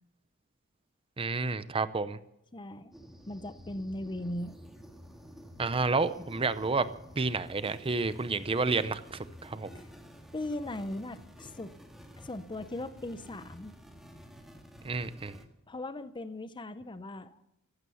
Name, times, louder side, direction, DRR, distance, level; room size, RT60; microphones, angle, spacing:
voice 1, 1.2-2.2 5.6-6.9 7.2-9.8 14.8-15.4, right 3 dB, 25° right, 14 dB, 0.6 m, -30 dB
voice 2, 2.5-2.9 3.3-4.5 9.7-9.9 10.3-11.7 12.2-13.7 15.7-17.4, left 1 dB, 20° left, 12 dB, 0.7 m, -38 dB
sound 1, 2.9-15.4, equal, ahead, 2.0 m, -51 dB
15.0 x 12.5 x 7.0 m, 0.84 s
head